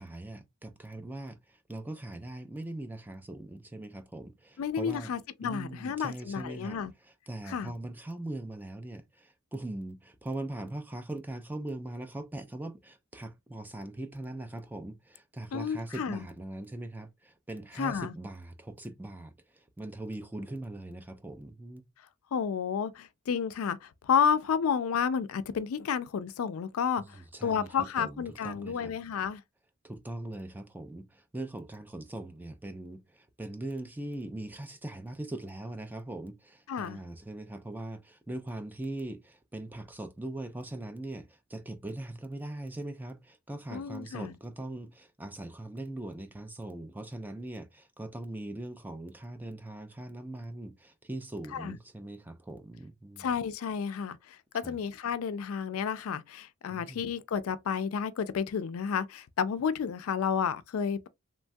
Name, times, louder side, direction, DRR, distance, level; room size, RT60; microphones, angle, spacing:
voice 1, 0.0-5.1 5.4-6.8 7.0-21.8 27.0-28.9 29.8-53.3 54.6-54.8 56.7-57.1, right 1 dB, 10° right, 0.3 m, -41 dB
voice 2, 4.6-6.9 7.5-7.7 15.5-16.2 17.8-18.1 22.3-29.4 36.7-37.0 43.7-44.3 51.5-51.8 53.2-61.1, left 7 dB, 80° left, 0.4 m, -31 dB
3.1 x 2.2 x 2.6 m
head